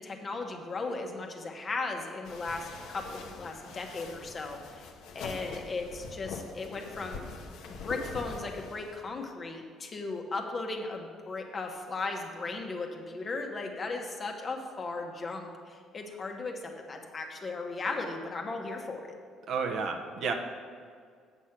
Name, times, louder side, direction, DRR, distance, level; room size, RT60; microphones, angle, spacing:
voice 1, 0.0-4.9 5.1-7.3 7.8-19.0, left 3 dB, 35° left, 2 dB, 1.2 m, -36 dB
sound 1, 2.2-9.0, left 4 dB, 80° left, 0.9 m, -44 dB
voice 2, 19.5-20.3, right 5 dB, 60° right, 4 dB, 0.9 m, -31 dB
8.1 x 6.3 x 5.9 m, 2.1 s
cardioid pair, 105°, 0 cm